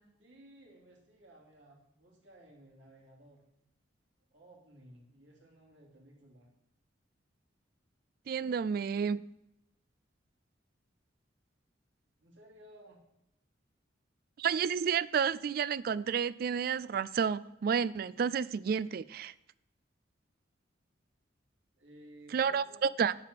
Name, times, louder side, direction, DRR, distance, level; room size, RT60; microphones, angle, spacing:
voice 1, 0.2-3.4 4.3-6.5 12.2-13.0 21.8-22.8, right 1 dB, 85° right, 2.8 m, -57 dB
voice 2, 8.3-9.2 14.4-19.3 22.3-23.1, right 7 dB, 50° right, 0.3 m, -30 dB
7.5 x 5.8 x 7.5 m
head